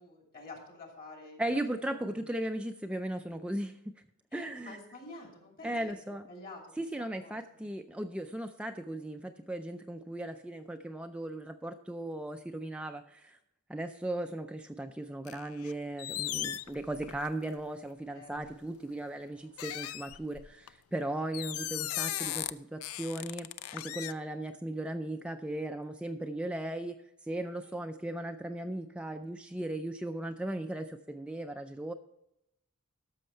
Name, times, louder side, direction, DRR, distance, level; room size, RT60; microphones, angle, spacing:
voice 1, 0.0-2.1 4.3-5.7 6.3-7.6 16.4-16.6 18.1-18.3 27.6-27.7, left 2 dB, 45° left, 1 dB, 2.7 m, -49 dB
voice 2, 1.4-4.0 4.3-4.8 5.6-6.3 6.8-13.4 13.7-26.9 27.2-31.9, right 1 dB, 5° right, 6 dB, 0.3 m, -37 dB
sound 1, 15.3-15.7 16.0-17.5 18.3-18.5 19.6-20.7 21.3-22.5 22.8-24.1, left 13 dB, 70° left, 0.4 m, -37 dB
13.0 x 6.4 x 4.4 m, 0.82 s
head